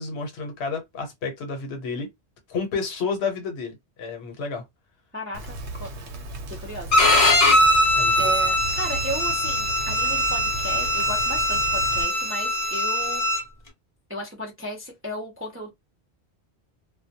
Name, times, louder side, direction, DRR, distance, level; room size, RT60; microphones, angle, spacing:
voice 1, 0.0-2.1 2.5-4.6 7.9-8.3, left 4 dB, 75° left, 1.0 m, -30 dB
voice 2, 5.1-5.9 6.5-7.0 8.2-13.3 14.1-15.7, equal, 20° right, 0.4 m, -35 dB
Rain, 5.3-12.0, right 2 dB, 85° right, 1.0 m, -36 dB
Bowed string instrument, 6.9-13.4, left 1 dB, 40° left, 0.7 m, -21 dB
2.2 x 2.1 x 2.7 m
omnidirectional pair, 1.1 m